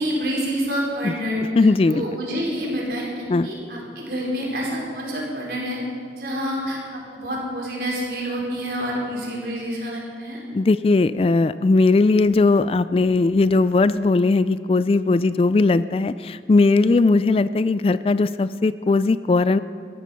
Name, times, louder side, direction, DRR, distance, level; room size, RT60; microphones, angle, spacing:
voice 1, 0.0-5.8 6.2-10.4, equal, 60° right, -3 dB, 4.6 m, -28 dB
voice 2, 1.6-2.0 3.3-3.5 10.5-19.6, left 3 dB, 35° left, 15 dB, 0.3 m, -18 dB
18.0 x 13.5 x 5.7 m, 2.2 s
head